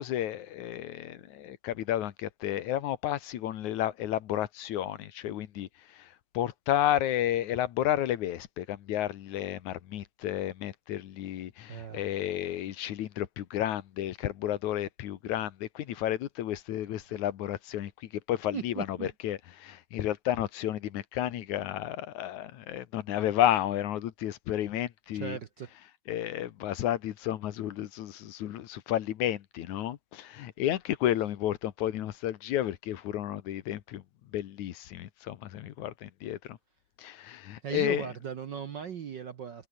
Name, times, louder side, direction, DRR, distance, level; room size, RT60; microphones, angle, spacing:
voice 1, 0.0-25.4 26.1-34.0 34.3-36.6 37.0-38.1, left 12 dB, 80° left, 2.7 m, -32 dB
voice 2, 11.7-12.0 18.5-19.1 25.1-25.7 37.6-39.7, right 7 dB, 60° right, 1.2 m, -37 dB
omnidirectional pair, 3.3 m